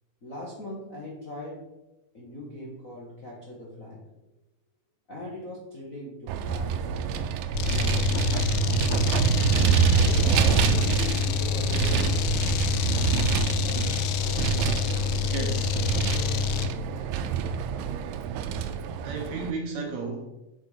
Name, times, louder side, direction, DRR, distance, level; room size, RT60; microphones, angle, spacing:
voice 1, 0.2-1.6 2.1-4.0 5.1-7.3 7.7-9.2 9.9-12.3, equal, 45° left, -4 dB, 1.0 m, -40 dB
Vehicle, 6.3-19.5, right 7 dB, 90° right, 2.3 m, -26 dB
sound 1, 7.5-16.7, left 8 dB, 80° left, 2.1 m, -27 dB
voice 2, 15.3-15.8 19.0-20.3, right 4 dB, 70° right, 3 dB, 1.9 m, -33 dB
8.0 x 6.9 x 5.0 m, 0.97 s
omnidirectional pair, 4.0 m